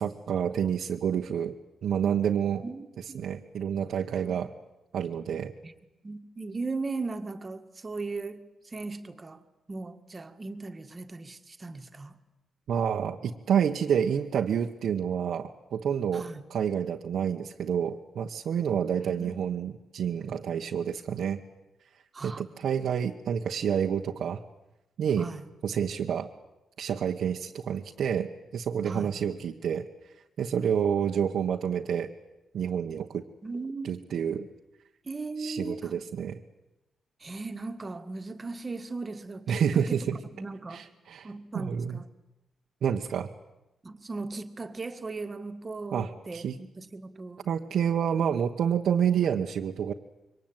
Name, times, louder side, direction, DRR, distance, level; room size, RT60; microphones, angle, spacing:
voice 1, 0.0-1.6 1.8-2.6 3.1-4.5 4.9-5.5 12.7-21.4 22.2-24.4 25.0-25.3 25.6-26.3 26.8-29.9 30.4-32.1 32.5-33.2 33.8-34.5 35.4-36.4 39.5-40.2 40.7-41.3 41.5-42.0 42.8-43.3 45.9-46.6 47.4-49.9, right 8 dB, 65° right, 1.3 m, -28 dB
voice 2, 2.6-3.3 4.2-4.4 5.6-5.7 6.0-12.2 16.1-16.4 19.1-19.3 22.1-22.7 25.2-25.4 28.9-29.1 33.4-33.9 35.0-36.0 37.2-40.1 40.3-40.9 41.2-42.0 43.8-47.5, right 3 dB, 25° right, 1.8 m, -38 dB
27.0 x 24.0 x 9.1 m
wide cardioid pair, 145°, 0 cm